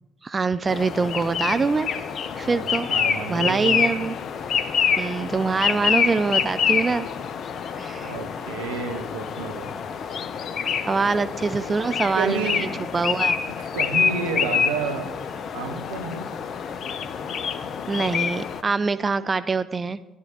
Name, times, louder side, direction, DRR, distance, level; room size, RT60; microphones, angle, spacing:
voice 1, 0.2-1.9 2.4-2.9 3.3-4.1 5.0-7.1 7.8-8.1 10.8-12.5 12.9-13.4 17.9-20.0, right 4 dB, 30° right, 14 dB, 0.3 m, -24 dB
sound 1, 0.7-18.6, left 6 dB, 45° left, 0.5 m, -27 dB
voice 2, 2.9-4.0 8.0-9.7 12.2-12.8 13.7-15.1 15.5-16.3, right 5 dB, 70° right, 6 dB, 0.8 m, -30 dB
13.5 x 10.5 x 2.9 m, 1.0 s
figure-of-eight pair, 50°, 0 cm